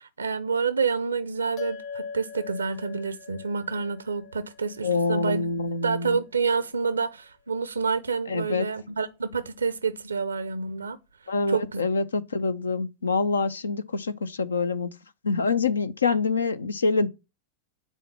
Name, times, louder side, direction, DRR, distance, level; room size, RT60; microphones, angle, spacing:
voice 1, 0.0-5.5 5.8-11.0 11.5-11.8, right 5 dB, 75° right, 0.5 m, -28 dB
sound 1, 1.6-6.3, left 5 dB, 45° left, 1.0 m, -41 dB
voice 2, 4.8-6.2 8.3-8.7 11.3-14.9 15.2-17.1, left 4 dB, 75° left, 0.6 m, -26 dB
9.1 x 4.2 x 7.1 m
figure-of-eight pair, 90°, 0 cm